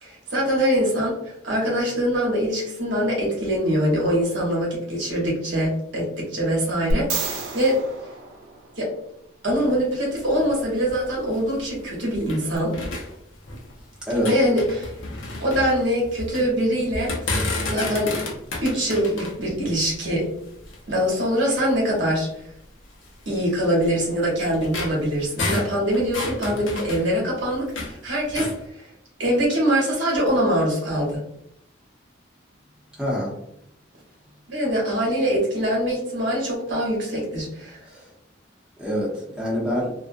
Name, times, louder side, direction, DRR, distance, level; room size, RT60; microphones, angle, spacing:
voice 1, 0.0-7.8 8.8-8.9 9.4-12.7 14.2-15.0 15.4-18.1 18.6-20.2 20.9-22.3 23.3-28.9 29.2-31.2 34.5-37.8, equal, 70° right, -3 dB, 0.9 m, -23 dB
sound 1, 6.9-9.1 12.6-12.7, right 2 dB, 85° right, 0.6 m, -30 dB
sound 2, 9.5-12.4 12.7-13.8 14.1-16.5 16.9-20.9 21.5-21.6 22.1-22.3 23.0-28.0 28.3-28.6, left 2 dB, 80° left, 0.6 m, -32 dB
voice 2, 14.0-14.3 26.2-26.6 33.0-33.3 37.9-38.1 38.8-39.9, equal, 5° right, -6 dB, 0.7 m, -26 dB
2.3 x 2.2 x 2.5 m, 0.75 s
head